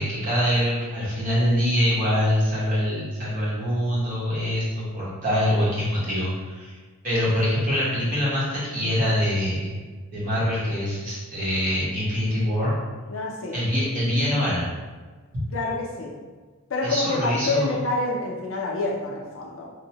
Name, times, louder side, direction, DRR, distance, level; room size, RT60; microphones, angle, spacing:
voice 1, 0.0-6.8 7.0-9.7 10.1-12.7 13.5-14.7 16.8-17.8, equal, 40° right, -8 dB, 1.0 m, -24 dB
voice 2, 13.1-13.6 15.5-16.2 16.7-19.7, left 2 dB, 60° left, -2 dB, 0.5 m, -27 dB
2.7 x 2.1 x 2.8 m, 1.4 s
head